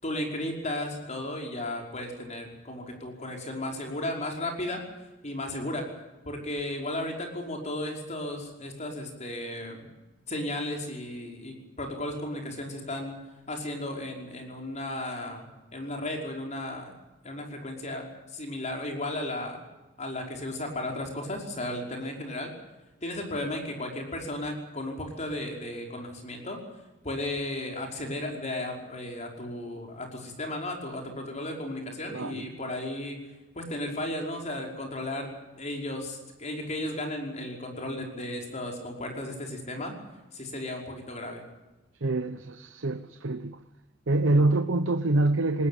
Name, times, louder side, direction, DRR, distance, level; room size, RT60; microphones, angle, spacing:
voice 1, 0.0-4.8 5.2-5.8 6.3-9.9 10.3-13.2 13.5-15.5 15.7-16.9 17.2-19.6 20.0-22.5 23.0-26.6 27.0-33.2 33.6-35.3 35.6-39.9 40.3-41.4 44.2-44.4, left 1 dB, 40° left, 1 dB, 5.4 m, -34 dB
voice 2, 32.1-32.5 42.0-43.6 44.1-45.7, right 2 dB, 85° right, 9 dB, 1.0 m, -25 dB
19.5 x 19.5 x 9.1 m, 1.1 s
head